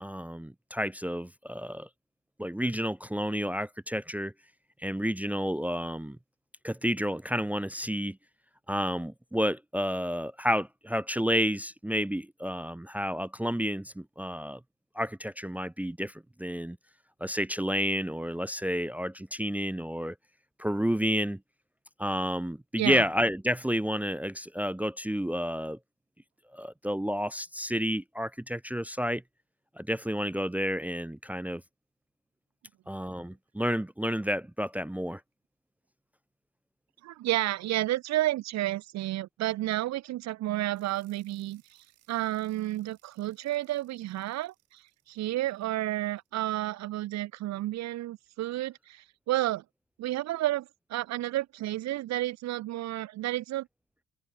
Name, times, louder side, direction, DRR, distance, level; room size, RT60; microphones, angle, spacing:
voice 1, 0.0-1.9 2.4-4.3 4.8-6.2 6.6-8.2 8.7-14.6 15.0-16.1 16.4-16.8 17.2-20.1 20.6-21.4 22.0-25.8 26.5-29.2 29.8-31.6 32.9-35.2, equal, 5° right, 0.5 m, -30 dB
voice 2, 37.0-41.6 42.1-44.8 45.1-49.6 50.0-53.7, right 15 dB, 60° right, 0.5 m, -31 dB
sound 1, 40.7-46.5, right 14 dB, 85° right, 6.9 m, -68 dB
open air
cardioid pair, 90°, 30 cm